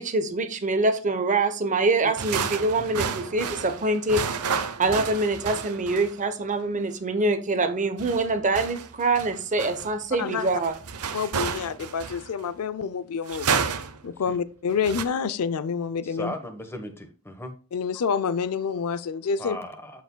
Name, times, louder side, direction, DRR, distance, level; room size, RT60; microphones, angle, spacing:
voice 1, 0.0-4.3 4.8-10.7, right 2 dB, 35° right, 0.8 m, -25 dB
sound 1, 2.2-6.2 8.0-12.4 13.3-14.1 14.7-15.0, right 6 dB, 85° right, 0.7 m, -31 dB
voice 2, 11.1-13.5 14.0-16.3 17.7-19.6, left 6 dB, 75° left, 0.5 m, -28 dB
voice 3, 16.0-17.5 19.4-20.0, left 1 dB, 10° left, 1.1 m, -37 dB
13.5 x 4.8 x 2.2 m
head